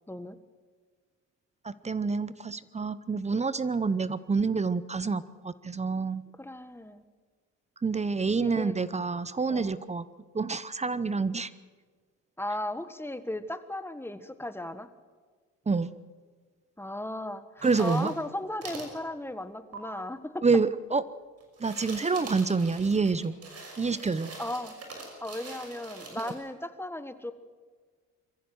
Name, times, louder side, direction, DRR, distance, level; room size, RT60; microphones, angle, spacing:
voice 1, 1.6-6.2 7.8-10.1 10.3-11.5 15.7-15.9 17.6-18.1 20.4-21.0 21.6-23.3 23.8-24.3 26.2-26.3, right 4 dB, 20° right, 16 dB, 0.8 m, -27 dB
voice 2, 6.4-7.0 8.4-8.8 9.5-9.7 12.4-14.9 16.8-20.4 24.4-24.7 25.2-27.3, left 1 dB, 10° left, 11 dB, 1.5 m, -36 dB
sound 1, 17.6-18.2 18.6-18.9 19.7-19.8 21.4-26.3, right 3 dB, 55° right, 6.0 m, -44 dB
23.5 x 15.0 x 7.9 m, 1.5 s
cardioid pair, 90°, 30 cm